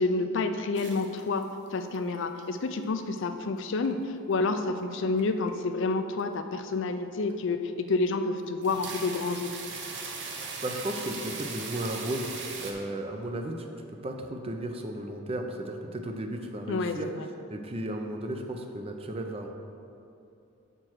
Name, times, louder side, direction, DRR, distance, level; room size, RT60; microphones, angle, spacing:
voice 1, 0.0-9.5 16.7-17.2, left 3 dB, 60° left, 8 dB, 0.4 m, -29 dB
sound 1, 0.7-1.7 1.9-2.4 2.8-3.4 3.8-3.9 4.8-5.2 5.5-5.7 6.2-6.3 6.7-6.8 7.3-7.4 7.9-8.1 8.4-12.7, right 4 dB, 55° right, 0.8 m, -39 dB
voice 2, 10.6-13.7 14.0-17.1 17.5-19.5, right 1 dB, 25° right, 4 dB, 0.5 m, -34 dB
6.7 x 4.3 x 6.2 m, 2.7 s
head